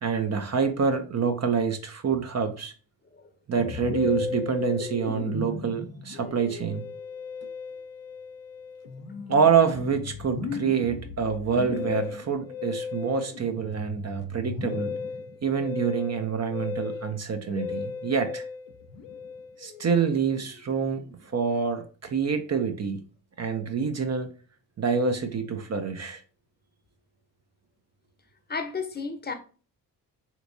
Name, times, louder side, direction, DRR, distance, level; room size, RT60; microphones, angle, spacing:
voice 1, 0.0-2.7 3.5-6.8 9.3-14.9 15.4-18.4 19.6-23.0 23.4-24.3 24.8-26.2, right 6 dB, 35° right, 0.6 m, -26 dB
Musical instrument, 3.6-21.2, left 5 dB, 80° left, 0.6 m, -36 dB
voice 2, 28.5-29.3, left 4 dB, 20° left, 0.7 m, -32 dB
3.4 x 2.9 x 2.6 m
hypercardioid pair, 45°, 45 cm